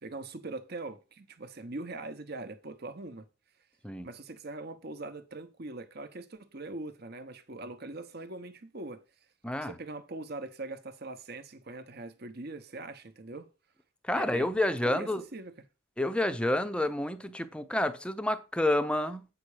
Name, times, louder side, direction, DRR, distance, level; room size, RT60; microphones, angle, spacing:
voice 1, 0.0-3.3 4.0-9.0 9.6-13.5 14.1-14.5 14.8-15.5, right 2 dB, 45° right, 0.9 m, -42 dB
voice 2, 9.4-9.7 14.0-15.2 16.0-19.3, left 1 dB, 5° left, 0.6 m, -29 dB
8.4 x 5.9 x 4.9 m
head